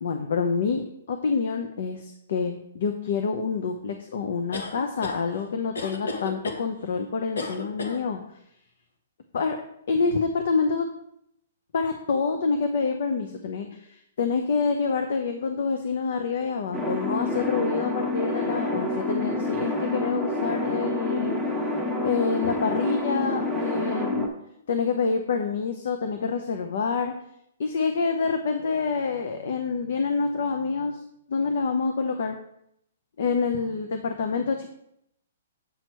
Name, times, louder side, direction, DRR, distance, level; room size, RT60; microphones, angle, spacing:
voice 1, 0.0-8.2 9.3-9.6 9.9-10.9 11.7-21.4 22.0-24.3 24.7-27.1 27.6-31.0 31.3-32.4 33.2-34.7, left 5 dB, 65° left, 6 dB, 0.8 m, -27 dB
sound 1, 4.5-5.2 5.7-6.6 7.4-8.0, left 2 dB, 85° left, 1.2 m, -32 dB
sound 2, 16.7-24.3, left 2 dB, 5° left, 1.3 m, -28 dB
7.9 x 4.5 x 4.6 m, 0.75 s
hypercardioid pair, 145°, 0 cm